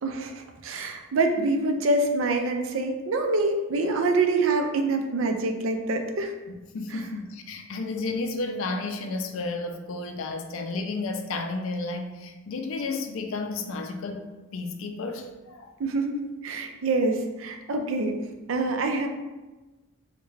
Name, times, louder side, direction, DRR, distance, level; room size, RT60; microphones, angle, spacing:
voice 1, 0.0-6.3 6.9-7.0 15.8-18.2 18.5-19.1, right 2 dB, 70° right, 4 dB, 0.4 m, -26 dB
voice 2, 6.5-15.7, left 3 dB, 75° left, 5 dB, 0.4 m, -32 dB
3.5 x 2.2 x 3.1 m, 1.2 s
head